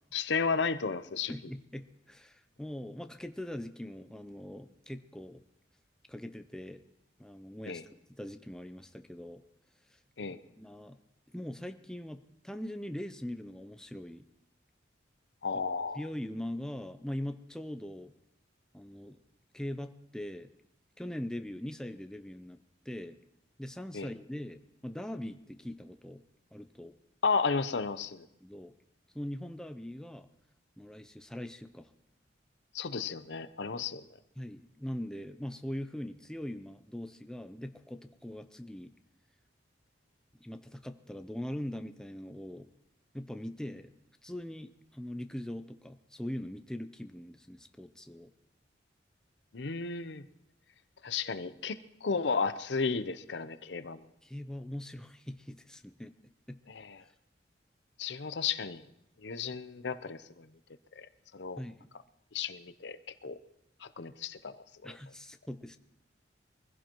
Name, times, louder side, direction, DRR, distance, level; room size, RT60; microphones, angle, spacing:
voice 1, 0.1-1.3 7.7-7.8 10.2-10.4 15.4-16.0 23.9-24.1 27.2-28.3 32.7-34.0 49.5-50.2 51.0-54.0 56.7-57.0 58.0-58.8 59.2-60.5 61.0-61.1 61.3-61.6 62.3-63.4 63.8-64.9, left 5 dB, 65° left, 13 dB, 0.6 m, -33 dB
voice 2, 1.3-5.4 6.1-6.8 7.2-7.8 8.2-9.4 9.9-10.0 10.3-11.0 11.3-14.2 15.5-15.6 15.9-18.1 18.7-19.2 19.5-20.5 21.0-23.2 23.6-26.2 26.5-26.9 28.4-28.7 29.1-30.3 30.8-31.9 34.4-38.9 40.4-42.7 43.1-43.9 44.2-48.3 54.2-56.1 56.5-56.6 61.6-61.9 64.8-65.8, left 1 dB, 5° left, 8 dB, 0.5 m, -41 dB
23.5 x 16.0 x 3.0 m, 0.81 s
head